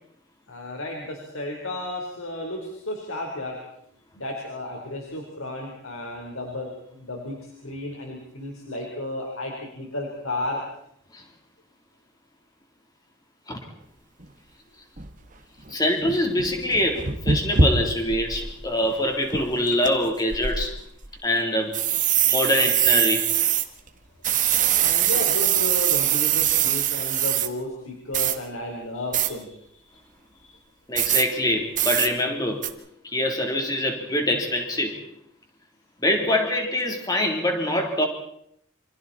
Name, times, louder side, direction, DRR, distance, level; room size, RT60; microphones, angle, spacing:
voice 1, 0.5-3.6 4.1-10.6 24.6-30.0 30.3-30.6, left 1 dB, 90° left, 0 dB, 4.3 m, -33 dB
sound 1, 14.2-14.3 15.0-15.1 15.7-15.8 16.0-18.5 18.8-18.9 19.3-19.9 20.3-21.1 21.7-23.6 24.2-27.5 28.1-28.4 29.1-29.3 31.0-31.2 31.8-32.1 32.6-32.7, right 8 dB, 40° right, 1.7 m, -22 dB
voice 2, 15.7-20.7 21.2-21.8 22.3-23.3 30.9-32.6 33.0-35.0 36.0-38.1, left 1 dB, 20° left, 3 dB, 3.6 m, -24 dB
28.0 x 26.0 x 4.4 m, 0.71 s
head